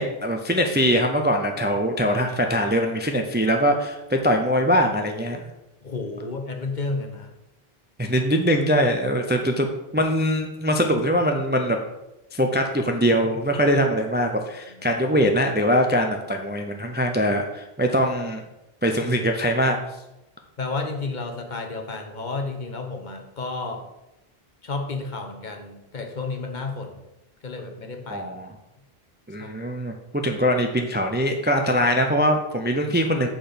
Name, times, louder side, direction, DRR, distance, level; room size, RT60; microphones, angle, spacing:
voice 1, 0.0-5.5 8.0-9.7 9.9-11.8 12.3-18.4 18.8-19.8 28.1-28.5 29.3-33.3, equal, 15° right, 4 dB, 0.5 m, -22 dB
voice 2, 2.0-2.6 5.8-7.3 14.7-14.9 20.6-23.8 24.6-27.0 27.4-28.3 29.4-29.5, left 3 dB, 50° left, 4 dB, 1.0 m, -32 dB
7.8 x 4.5 x 5.0 m, 0.94 s
omnidirectional pair, 1.0 m